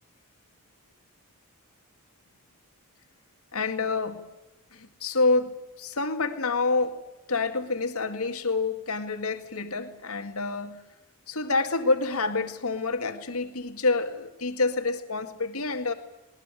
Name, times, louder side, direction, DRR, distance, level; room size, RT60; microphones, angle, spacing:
voice 1, 3.5-4.2 4.7-10.8 11.3-15.9, left 3 dB, 80° left, 7 dB, 2.0 m, -28 dB
20.0 x 19.5 x 9.1 m, 1.0 s
head